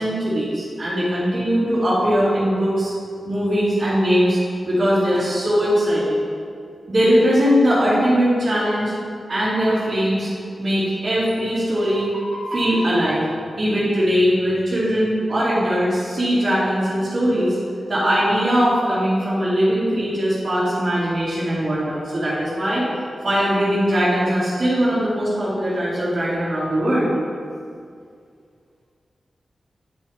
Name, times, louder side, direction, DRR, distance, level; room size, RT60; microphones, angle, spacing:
voice 1, 0.0-2.9 3.3-4.4 4.6-6.3 6.9-8.9 9.3-10.3 10.6-13.2 13.6-17.6 17.9-22.9 23.2-27.1, equal, 40° right, -13 dB, 2.4 m, -20 dB
10.0 x 7.2 x 3.6 m, 2.2 s
wide cardioid pair, 115°, 0 cm